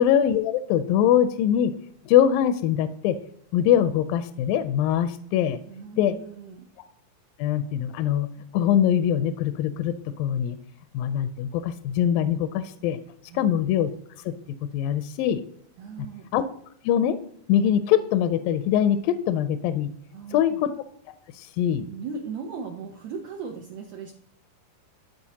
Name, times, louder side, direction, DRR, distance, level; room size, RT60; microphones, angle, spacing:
voice 1, 0.0-1.7 2.1-3.2 3.5-5.6 6.0-6.2 7.4-8.3 8.5-10.6 10.9-13.0 13.3-13.9 14.3-14.4 14.7-15.4 16.3-16.4 16.8-17.2 17.5-19.9 20.3-20.7 21.4-21.9, left 10 dB, 80° left, 11 dB, 2.1 m, -22 dB
voice 2, 5.7-6.7 13.3-13.5 15.8-16.3 20.1-20.6 21.9-24.1, right 5 dB, 75° right, 2 dB, 1.6 m, -37 dB
13.5 x 4.7 x 2.8 m, 0.67 s
omnidirectional pair, 4.2 m